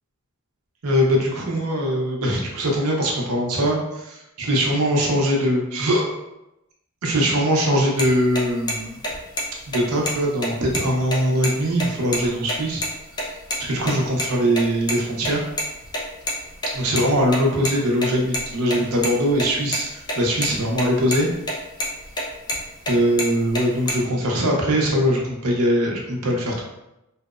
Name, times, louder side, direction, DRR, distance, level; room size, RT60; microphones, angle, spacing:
voice 1, 0.8-6.0 7.0-9.0 9.7-12.8 13.6-15.5 16.7-21.3 22.9-26.6, equal, 75° right, -1 dB, 0.6 m, -21 dB
sound 1, 8.0-8.1 8.4-8.5 8.7-8.8 9.0-9.4 9.7-9.8 10.1-10.2 10.4-11.5 11.8-11.9 12.1-12.2 12.5-12.9 13.2-13.6 13.9-14.9 15.2-17.7 18.0-19.8 20.1-20.2 20.4-20.8 21.1-21.5 21.8-22.9 23.2-23.9, left 1 dB, 20° left, 0.4 m, -26 dB
2.7 x 2.0 x 2.3 m, 0.91 s
head